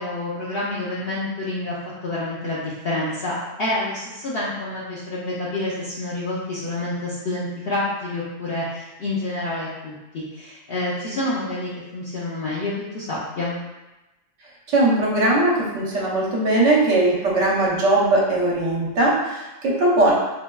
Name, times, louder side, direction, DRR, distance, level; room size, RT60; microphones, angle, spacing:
voice 1, 0.0-1.7 2.0-13.6, left 2 dB, 60° left, -8 dB, 0.7 m, -28 dB
voice 2, 14.7-20.1, right 2 dB, 75° right, -4 dB, 1.0 m, -19 dB
4.4 x 2.2 x 2.2 m, 1.0 s
omnidirectional pair, 1.3 m